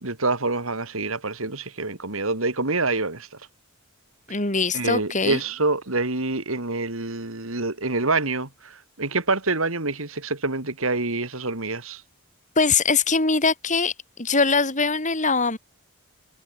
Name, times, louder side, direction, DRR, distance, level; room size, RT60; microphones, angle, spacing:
voice 1, 0.0-3.3 4.7-12.0, right 3 dB, 70° right, 3.1 m, -26 dB
voice 2, 4.3-5.4 12.6-13.9 14.2-15.6, left 4 dB, 35° left, 4.9 m, -22 dB
head